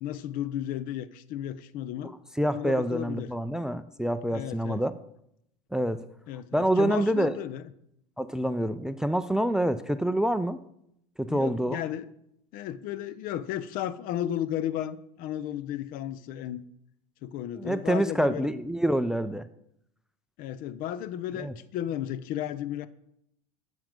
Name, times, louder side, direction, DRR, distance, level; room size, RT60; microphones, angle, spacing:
voice 1, 0.0-2.1 2.5-3.3 4.3-4.8 6.3-7.6 11.3-12.1 12.5-16.6 17.2-18.5 20.4-22.9, left 11 dB, 50° left, 0.5 m, -34 dB
voice 2, 2.0-4.9 5.7-6.0 6.5-7.3 8.2-10.6 11.2-11.8 17.6-19.5 21.4-21.5, right 1 dB, 5° right, 0.4 m, -27 dB
7.6 x 5.8 x 5.2 m
hypercardioid pair, 90°, 18 cm